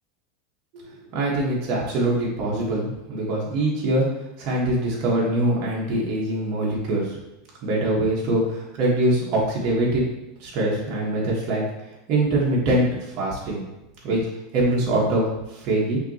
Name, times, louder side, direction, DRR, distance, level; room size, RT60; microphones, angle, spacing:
voice 1, 1.1-4.0 4.4-7.2 7.6-10.0 10.4-11.6 12.1-13.6 14.0-14.2 14.5-16.0, right 1 dB, 45° right, -4 dB, 1.3 m, -23 dB
5.6 x 2.8 x 2.8 m, 0.97 s
supercardioid pair, 150°, 0 cm